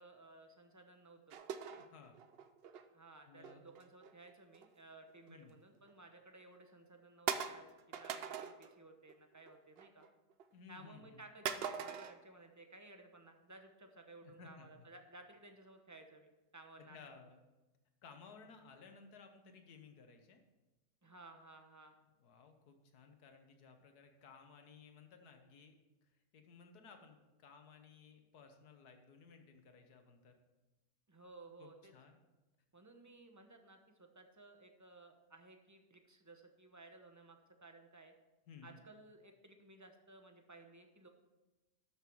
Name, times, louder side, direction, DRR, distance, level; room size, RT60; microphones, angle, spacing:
voice 1, 0.0-1.4 2.9-10.1 10.7-17.1 21.0-21.9 31.1-31.9 32.7-38.1 38.6-41.1, right 2 dB, 15° right, 5 dB, 0.8 m, -58 dB
sound 1, 1.3-2.8 3.4-4.7 5.1-5.4 5.9-6.0 6.5-6.6 7.3-8.7 9.1-9.5 9.8-10.4 11.4-12.2, right 7 dB, 60° right, 0.6 m, -42 dB
voice 2, 1.7-2.2 3.3-3.6 5.3-5.6 10.5-11.2 14.2-14.7 16.8-17.4 18.0-20.4 22.0-25.7 26.3-30.3 31.6-32.2 38.5-38.8, left 5 dB, 85° left, 5 dB, 1.7 m, -58 dB
12.5 x 6.7 x 4.6 m, 1.1 s
omnidirectional pair, 1.6 m